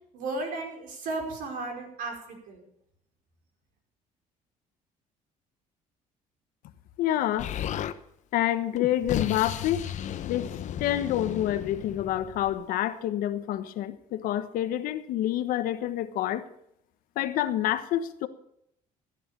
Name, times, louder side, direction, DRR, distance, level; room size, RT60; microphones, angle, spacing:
voice 1, 0.1-2.6, right 2 dB, 70° right, 3 dB, 5.1 m, -34 dB
voice 2, 7.0-7.5 8.3-9.8 10.3-10.5 10.8-16.4 17.2-18.3, left 12 dB, 75° left, 11 dB, 1.3 m, -27 dB
Explosion, 7.4-8.0 8.7-12.6, left 10 dB, 55° left, 1.0 m, -34 dB
15.0 x 9.9 x 6.9 m, 0.74 s
cardioid pair, 110°, 15 cm